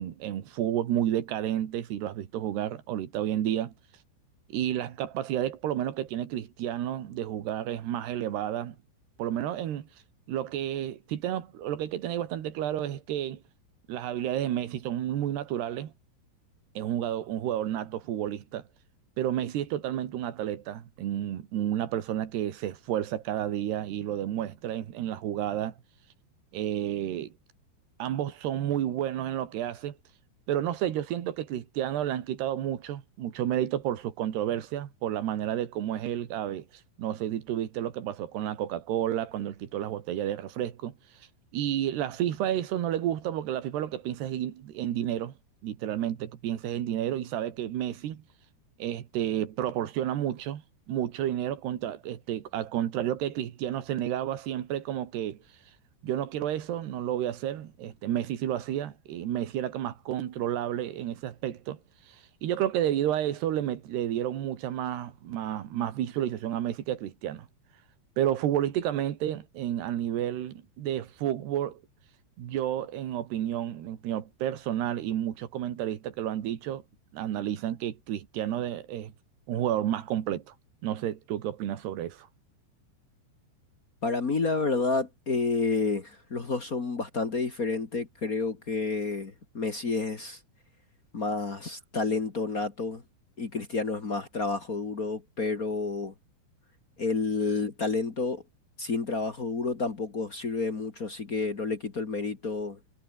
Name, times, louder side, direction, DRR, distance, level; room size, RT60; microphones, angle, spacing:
voice 1, 0.0-3.7 4.5-8.8 9.2-9.9 10.3-13.4 13.9-15.9 16.8-18.6 19.2-25.7 26.5-27.3 28.0-30.0 30.5-36.7 37.0-40.9 41.5-45.3 45.6-48.2 48.8-50.6 50.9-55.4 56.0-61.8 62.1-62.2 62.4-67.5 68.2-71.8 72.4-76.8 77.1-79.1 79.5-80.5 80.8-82.3, right 11 dB, 70° right, 4.0 m, -31 dB
voice 2, 84.0-90.4 91.1-93.0 93.4-96.1 97.0-98.4 98.8-102.8, left 3 dB, 50° left, 1.0 m, -30 dB
omnidirectional pair, 5.1 m